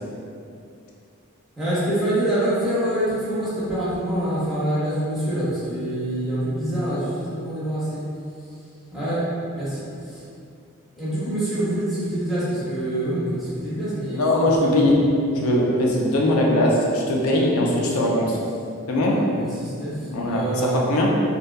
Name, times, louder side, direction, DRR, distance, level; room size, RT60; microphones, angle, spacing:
voice 1, 1.6-8.1 8.9-10.2 11.0-14.5 17.8-17.9 19.1-20.9, right 1 dB, ahead, -11 dB, 0.5 m, -26 dB
voice 2, 14.1-15.0 15.3-18.3 18.9-19.2 20.1-21.1, left 1 dB, 75° left, -2 dB, 0.4 m, -20 dB
2.6 x 2.2 x 2.2 m, 2.5 s
head